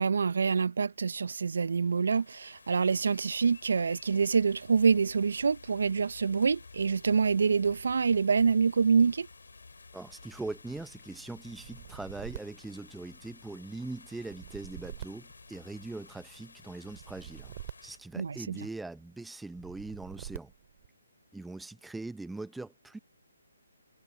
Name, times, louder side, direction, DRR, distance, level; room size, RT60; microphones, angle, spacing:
voice 1, 0.0-9.3 18.2-18.6, right 5 dB, 65° right, 0.5 m, -26 dB
sound 1, 1.4-18.0, left 4 dB, 80° left, 4.4 m, -53 dB
voice 2, 9.9-17.5 17.8-20.5 21.3-23.0, right 2 dB, 5° right, 0.7 m, -41 dB
sound 2, 11.5-13.5 14.2-16.1 16.8-18.8 19.5-20.9, right 12 dB, 35° right, 2.7 m, -46 dB
hypercardioid pair, 155°, 0 cm